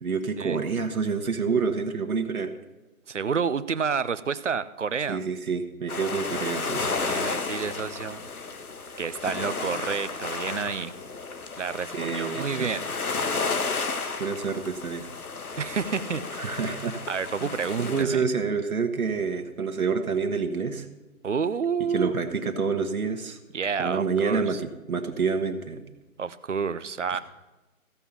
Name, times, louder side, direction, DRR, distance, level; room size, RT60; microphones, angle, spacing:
voice 1, 0.0-2.5 5.1-7.0 11.9-12.7 14.2-15.1 16.3-17.0 17.8-20.9 21.8-23.4 23.8-24.6 24.9-25.8 27.1-27.2, right 5 dB, 75° right, 5 dB, 1.4 m, -28 dB
voice 2, 3.1-5.2 7.0-8.3 9.0-10.9 11.6-12.9 15.6-16.2 17.1-18.2 21.2-22.1 23.5-24.6 26.2-27.2, right 6 dB, 55° right, 14 dB, 0.6 m, -29 dB
sound 1, 5.9-18.0, left 4 dB, 80° left, 1.4 m, -32 dB
15.0 x 5.6 x 7.0 m, 1.1 s
hypercardioid pair, 175°, 43 cm